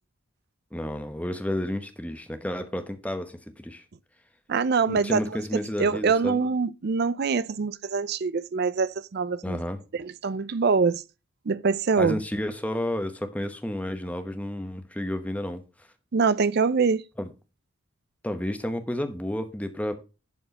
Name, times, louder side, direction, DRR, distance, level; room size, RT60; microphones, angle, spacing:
voice 1, 0.7-3.8 4.9-6.4 9.4-9.8 12.0-15.6 17.2-17.3 18.2-19.9, left 1 dB, 5° left, 0.9 m, -31 dB
voice 2, 4.5-5.2 5.8-9.6 9.9-11.0 11.5-12.2 16.1-17.0, right 5 dB, 45° right, 0.4 m, -24 dB
11.0 x 4.4 x 5.3 m
head